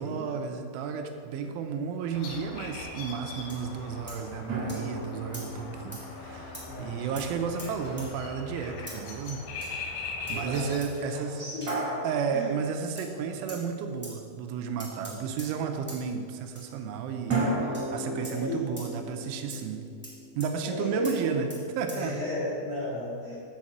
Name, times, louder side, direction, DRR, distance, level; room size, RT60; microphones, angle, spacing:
voice 1, 0.0-9.4 10.3-11.4 12.0-19.8 20.4-21.5 21.8-22.2, right 6 dB, 85° right, 5 dB, 3.2 m, -33 dB
sound 1, 2.1-10.8, left 3 dB, 75° left, 3.4 m, -40 dB
sound 2, 3.5-3.6 4.1-4.2 4.7-4.8 5.3-5.5 5.9-6.0 6.5-6.6 7.2-7.3 7.6-8.1 8.9-9.0 9.6-9.8 10.3-10.4 10.8-11.0 11.6-11.8 13.0-13.1 13.5-13.6 14.0-14.2 14.8-15.5 15.9-16.0 16.5-16.7 17.3-17.4 17.7-17.9 18.2-18.4 18.8-18.9 19.5-19.6 20.0-20.1 20.4-20.5 21.0-21.2 21.5-21.6 21.9-22.0, equal, 5° left, 0.8 m, -43 dB
sound 3, 4.5-7.8 11.7-13.7 17.3-20.4, right 2 dB, 50° right, 2.2 m, -35 dB
voice 2, 6.7-7.0 10.3-10.7 11.0-11.8 12.3-12.6 13.1-13.4 18.2-18.7 20.6-21.4 21.9-23.4, left 1 dB, 50° left, -9 dB, 1.6 m, -34 dB
8.6 x 5.7 x 7.8 m, 2.3 s
omnidirectional pair, 5.6 m